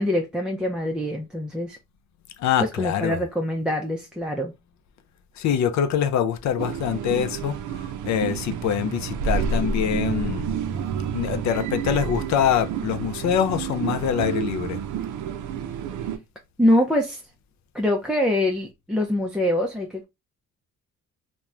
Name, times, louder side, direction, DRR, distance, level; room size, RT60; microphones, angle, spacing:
voice 1, 0.0-1.8 2.6-4.5 16.6-17.2 17.7-20.0, left 1 dB, 5° right, 0.4 m, -24 dB
voice 2, 2.4-3.2 5.4-7.5 8.0-10.5 11.1-14.8, left 9 dB, 65° left, 0.5 m, -24 dB
sound 1, 6.6-16.2, right 6 dB, 80° right, 0.5 m, -29 dB
2.9 x 2.1 x 2.4 m
cardioid pair, 90°, 30 cm